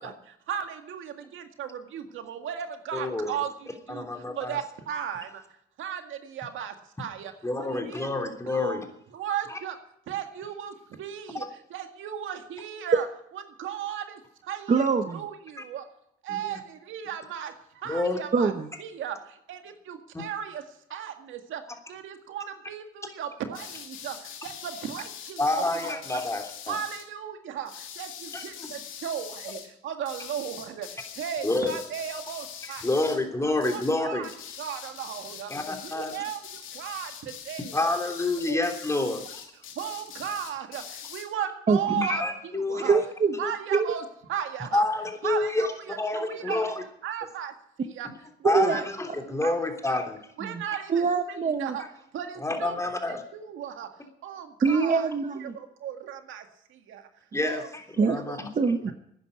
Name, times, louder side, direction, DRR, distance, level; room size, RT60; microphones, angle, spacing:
voice 1, 0.0-4.1 4.4-5.4 5.8-7.3 7.6-8.1 8.5-8.8 9.1-9.8 10.1-13.1 13.6-14.8 15.1-15.9 16.2-18.5 18.8-20.6 20.9-21.6 21.9-26.2 26.7-33.2 33.6-34.3 34.6-35.5 35.8-38.0 38.5-38.6 39.0-39.1 39.8-42.9 43.4-44.8 45.2-46.8 47.0-47.5 47.8-48.1 48.4-48.8 49.4-50.0 50.4-51.8 52.1-52.8 53.1-53.9 54.2-55.1 55.4-57.1 57.4-57.7 58.0-58.4, right 9 dB, 80° right, 6 dB, 1.9 m, -36 dB
voice 2, 2.9-3.4 3.9-4.6 7.4-8.8 9.5-9.6 16.3-16.6 17.8-18.2 25.4-26.7 28.3-28.8 31.4-31.8 32.8-34.2 35.5-36.2 37.7-39.4 41.9-43.0 43.4-43.5 44.7-45.7 46.0-46.8 48.4-50.2 51.8-51.9 52.4-53.2 57.3-57.6 58.1-58.5, left 2 dB, 15° left, 3 dB, 3.2 m, -28 dB
voice 3, 14.7-15.2 18.3-18.7 41.7-41.8 42.9-43.3 43.7-43.9 48.4-48.8 49.1-49.3 50.4-50.6 50.9-51.8 54.6-55.6 58.0-58.2 58.5-58.9, right 5 dB, 40° right, 6 dB, 1.2 m, -24 dB
sound 1, 23.5-27.1 27.6-29.7 30.0-33.3 33.6-34.0 34.2-41.3, left 8 dB, 85° left, 2.8 m, -43 dB
12.0 x 10.0 x 9.7 m, 0.72 s
cardioid pair, 90°, 20 cm